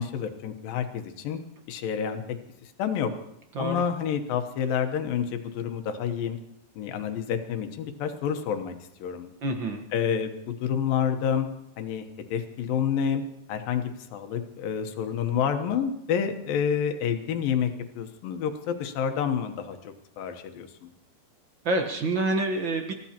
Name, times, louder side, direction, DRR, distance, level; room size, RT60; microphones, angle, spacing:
voice 1, 0.0-1.4 1.7-2.2 2.8-3.1 3.6-6.4 6.8-8.7 9.0-9.3 9.9-11.5 11.8-12.1 12.3-13.2 13.5-17.7 18.0-20.9, left 8 dB, 80° left, 7 dB, 2.9 m, -28 dB
voice 2, 9.4-9.8 21.6-22.9, right 2 dB, 60° right, 3 dB, 1.2 m, -27 dB
28.5 x 14.5 x 2.9 m, 0.78 s
omnidirectional pair, 4.1 m